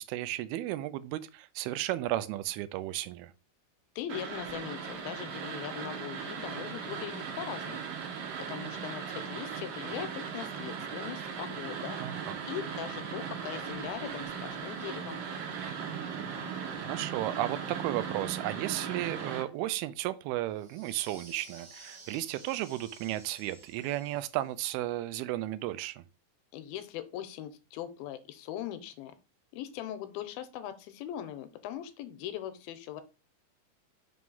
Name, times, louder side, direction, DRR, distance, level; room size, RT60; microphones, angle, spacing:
voice 1, 0.0-3.3 12.0-12.4 16.8-26.0, right 15 dB, 85° right, 2.5 m, -34 dB
voice 2, 4.0-7.9 8.4-12.0 12.5-15.3 26.5-29.1 29.5-33.0, left 11 dB, 80° left, 2.4 m, -40 dB
sound 1, 4.1-19.4, right 6 dB, 70° right, 2.6 m, -38 dB
sound 2, 20.5-24.6, right 3 dB, 45° right, 1.4 m, -53 dB
5.9 x 3.2 x 5.4 m
omnidirectional pair, 4.4 m